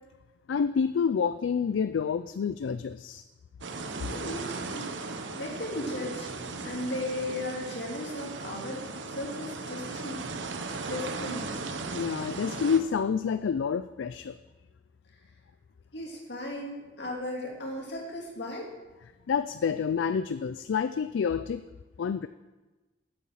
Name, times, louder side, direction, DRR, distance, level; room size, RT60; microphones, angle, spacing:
voice 1, 0.5-3.2 11.9-14.4 19.3-21.6 22.0-22.3, left 6 dB, 80° left, 12 dB, 0.4 m, -28 dB
sound 1, 3.6-12.8, right 3 dB, 75° right, 0.8 m, -37 dB
voice 2, 4.0-5.0 5.4-6.3 6.6-10.2 10.9-11.5 15.9-18.7, left 1 dB, 65° left, 0 dB, 2.2 m, -36 dB
8.7 x 6.9 x 7.4 m, 1.2 s
head